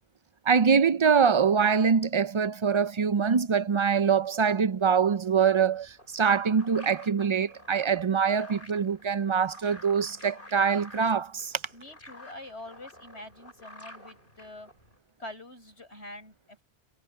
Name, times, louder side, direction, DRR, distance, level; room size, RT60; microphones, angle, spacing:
voice 1, 0.5-11.6, right 6 dB, 45° right, 0.3 m, -24 dB
sound 1, 5.7-15.0, left 1 dB, 50° left, 8.4 m, -50 dB
voice 2, 11.7-14.7 15.2-16.6, left 1 dB, 75° left, 8.0 m, -45 dB
omnidirectional pair, 1.1 m